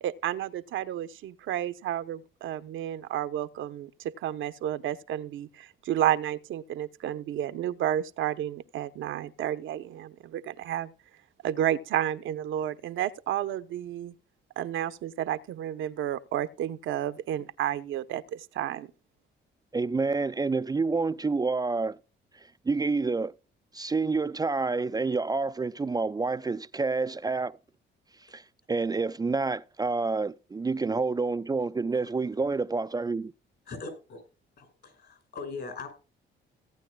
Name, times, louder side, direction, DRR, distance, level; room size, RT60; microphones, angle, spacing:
voice 1, 0.0-10.9 11.4-14.1 14.6-18.9, right 11 dB, 80° right, 0.8 m, -31 dB
voice 2, 19.7-22.0 22.7-23.3 23.7-27.6 28.3-28.4 28.7-33.3, right 4 dB, 20° right, 0.4 m, -28 dB
voice 3, 33.7-34.2 34.6-35.9, left 4 dB, 60° left, 5.5 m, -40 dB
17.5 x 9.0 x 2.2 m
cardioid pair, 90°, 20 cm